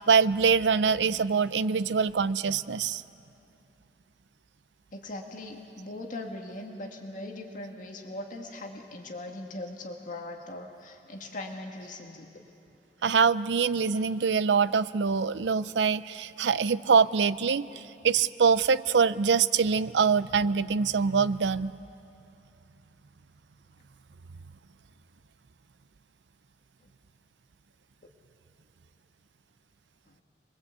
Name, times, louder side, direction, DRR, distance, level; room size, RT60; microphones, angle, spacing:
voice 1, 0.0-3.0 13.0-21.7, right 5 dB, 80° right, 16 dB, 0.5 m, -24 dB
voice 2, 4.9-12.3 30.1-30.2, left 1 dB, 50° left, 2 dB, 1.9 m, -40 dB
26.5 x 21.5 x 8.2 m, 2.7 s
head